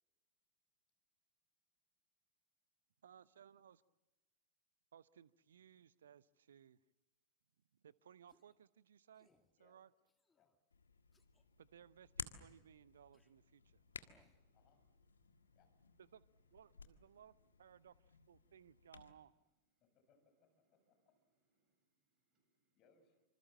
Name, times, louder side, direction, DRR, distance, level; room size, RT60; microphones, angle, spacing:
voice 1, 3.0-3.8 4.9-6.8 7.7-9.3 9.6-9.9 11.6-13.8 16.0-16.2 16.5-19.3, right 8 dB, 65° right, 18 dB, 0.8 m, -62 dB
sound 1, 8.3-8.6 9.1-9.5 10.1-10.6 11.1-11.4 12.2-12.6 13.1-13.3 14.0-14.4, left 3 dB, 10° left, 2.4 m, -77 dB
Hands, 10.7-19.1, left 5 dB, 75° left, 1.6 m, -55 dB
voice 2, 14.0-14.9 15.3-15.5 17.1-17.2 18.4-18.5 21.6-22.8, right 3 dB, 30° right, 5 dB, 7.9 m, -88 dB
voice 3, 19.9-21.0 22.7-23.2, left 5 dB, 35° left, 6 dB, 6.7 m, -74 dB
26.5 x 26.5 x 7.4 m, 1.1 s
figure-of-eight pair, 90°, 0 cm